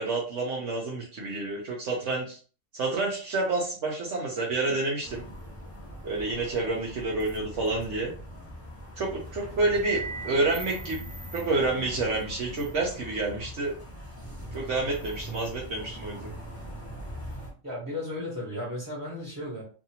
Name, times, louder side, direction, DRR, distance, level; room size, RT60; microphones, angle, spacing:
voice 1, 0.0-2.4 2.7-5.2 6.0-8.1 9.0-11.0 11.3-13.7 14.5-16.3, right 3 dB, 60° right, -2 dB, 0.9 m, -29 dB
sound 1, 5.0-17.5, equal, 15° left, 0.7 m, -41 dB
Piano, 9.8-11.8, right 3 dB, 35° left, 1.0 m, -39 dB
voice 2, 17.6-19.6, left 1 dB, 15° right, -6 dB, 0.9 m, -35 dB
2.7 x 2.5 x 2.8 m, 0.39 s
omnidirectional pair, 1.5 m